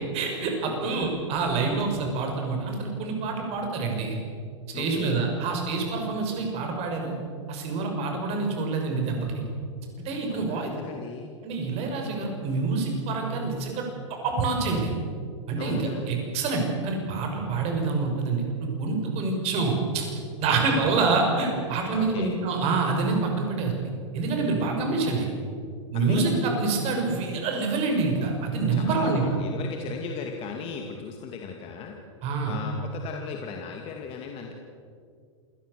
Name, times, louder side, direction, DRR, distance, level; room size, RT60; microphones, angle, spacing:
voice 1, 0.1-4.2 4.7-7.1 7.5-9.4 10.0-10.7 11.4-13.8 14.2-14.9 15.5-20.0 20.4-23.7 24.1-25.3 25.9-29.2 32.2-32.6, right 4 dB, 40° right, 2 dB, 6.1 m, -26 dB
voice 2, 0.7-1.1 4.7-5.2 10.3-11.3 15.6-16.1 21.9-22.3 25.9-26.5 28.7-32.0 32.4-34.5, left 6 dB, 35° left, 2 dB, 2.4 m, -36 dB
27.5 x 17.0 x 6.8 m, 2.2 s
hypercardioid pair, 115°, 16 cm